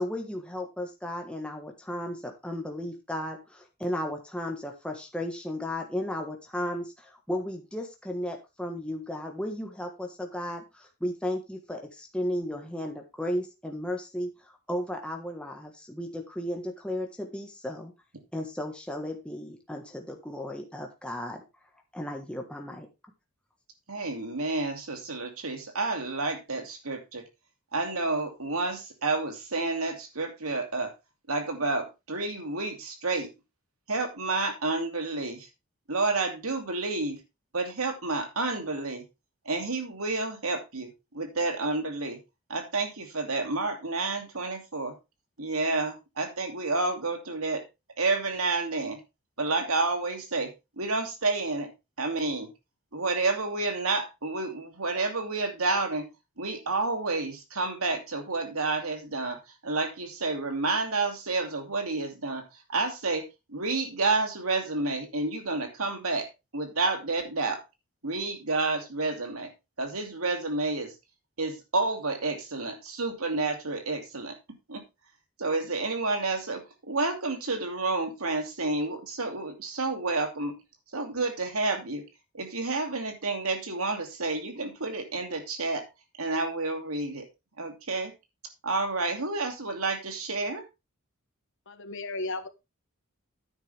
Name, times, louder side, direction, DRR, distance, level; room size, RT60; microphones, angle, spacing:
voice 1, 0.0-17.9 18.3-21.4 21.9-22.9, left 1 dB, 5° left, 1.4 m, -34 dB
voice 2, 23.9-27.2 27.7-30.9 31.3-33.3 33.9-35.5 35.9-37.2 37.5-39.0 39.4-42.2 42.5-45.0 45.4-47.6 48.0-49.0 49.4-51.7 52.0-52.5 52.9-56.1 56.4-66.3 66.5-67.6 68.0-69.5 69.8-70.9 71.4-74.4 74.7-74.8 75.4-80.6 80.9-82.0 82.3-85.8 86.2-87.3 87.6-88.1 88.6-90.6, right 3 dB, 85° right, 2.7 m, -30 dB
voice 3, 91.7-92.5, left 2 dB, 60° left, 1.3 m, -34 dB
10.0 x 8.9 x 3.4 m
head